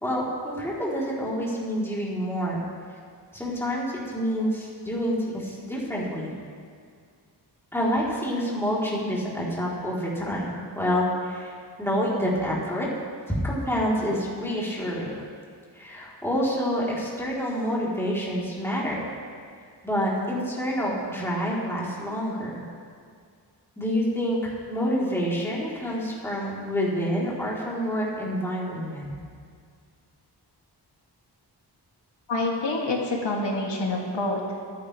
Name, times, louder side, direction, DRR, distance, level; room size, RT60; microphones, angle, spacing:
voice 1, 0.0-2.6 3.3-6.3 7.7-11.5 11.8-12.9 13.4-15.1 15.7-19.1 19.8-22.6 23.8-29.1, equal, 5° left, -7 dB, 3.7 m, -27 dB
voice 2, 32.3-34.8, left 2 dB, 85° left, -2 dB, 2.7 m, -27 dB
23.5 x 10.0 x 3.4 m, 2.1 s
wide cardioid pair, 75°, 42 cm